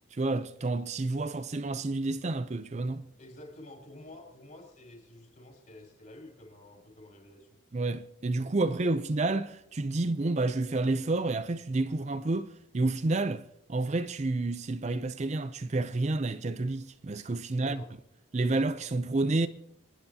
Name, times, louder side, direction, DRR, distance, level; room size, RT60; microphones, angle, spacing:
voice 1, 0.1-3.1 7.7-17.8 18.3-19.5, right 2 dB, 35° right, 0.5 m, -30 dB
voice 2, 3.2-7.6 8.3-8.7 17.6-17.9, left 1 dB, 45° left, 5.8 m, -50 dB
28.0 x 10.0 x 2.8 m
head